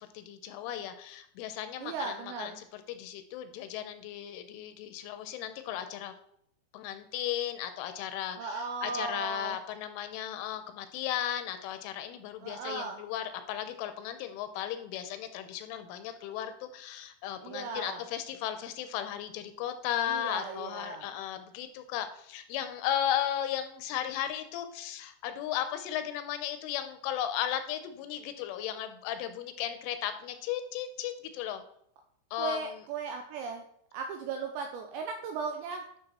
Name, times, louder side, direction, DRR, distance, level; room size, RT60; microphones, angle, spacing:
voice 1, 0.0-6.1 6.7-31.6 32.3-32.8, left 11 dB, 80° left, 9 dB, 3.0 m, -35 dB
voice 2, 1.8-2.6 8.4-9.6 12.4-13.0 17.4-18.0 20.1-21.1 32.4-33.6 33.9-35.8, right 5 dB, 90° right, 4 dB, 2.6 m, -37 dB
11.5 x 6.6 x 4.2 m, 0.70 s
omnidirectional pair, 5.9 m